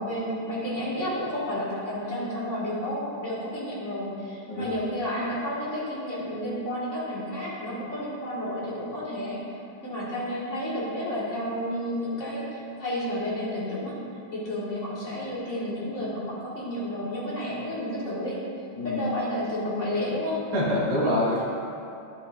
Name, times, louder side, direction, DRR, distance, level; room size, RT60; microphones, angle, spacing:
voice 1, 0.0-9.4 9.8-14.0 14.3-18.4 18.8-20.4, equal, 40° left, -8 dB, 2.3 m, -31 dB
voice 2, 20.5-21.4, left 1 dB, 60° right, -6 dB, 2.3 m, -25 dB
11.0 x 8.3 x 2.5 m, 2.6 s
omnidirectional pair, 2.2 m